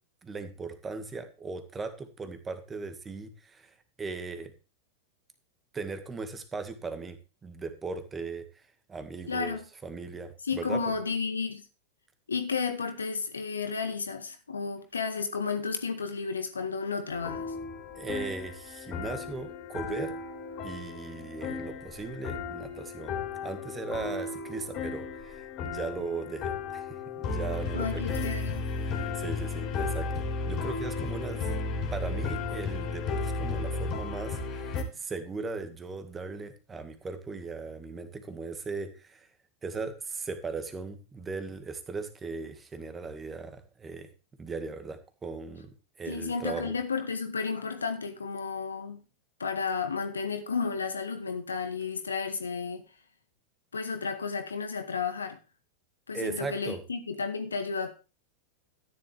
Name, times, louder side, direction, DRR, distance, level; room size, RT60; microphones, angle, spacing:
voice 1, 0.2-4.5 5.7-8.6 8.9-10.8 18.0-20.1 20.6-28.0 28.8-31.5 31.9-39.3 39.6-44.1 44.4-46.8 56.1-56.8, right 4 dB, 15° right, 1.9 m, -38 dB
voice 2, 9.3-9.6 10.4-11.6 12.3-17.5 27.7-28.7 46.1-49.0 49.4-52.8 53.7-55.4 56.1-57.9, left 5 dB, 75° left, 1.7 m, -32 dB
sound 1, 17.1-34.8, left 4 dB, 35° left, 3.1 m, -34 dB
13.5 x 10.5 x 3.4 m
figure-of-eight pair, 90°, 0 cm